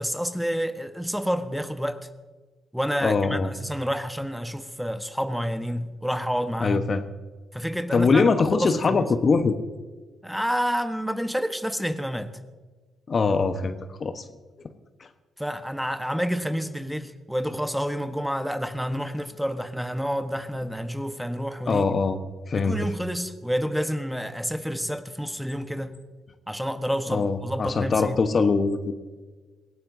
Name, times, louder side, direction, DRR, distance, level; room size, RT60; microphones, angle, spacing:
voice 1, 0.0-2.1 2.7-6.9 7.5-8.2 8.5-9.1 10.2-12.3 15.4-21.8 22.5-25.9 26.5-28.2, equal, ahead, 10 dB, 1.3 m, -29 dB
voice 2, 3.0-3.5 6.6-7.0 7.9-9.6 13.1-14.2 15.0-15.1 21.7-22.2 22.5-22.8 27.1-28.9, left 4 dB, 40° left, 9 dB, 1.2 m, -22 dB
27.5 x 17.5 x 2.8 m, 1.4 s
figure-of-eight pair, 45°, 0 cm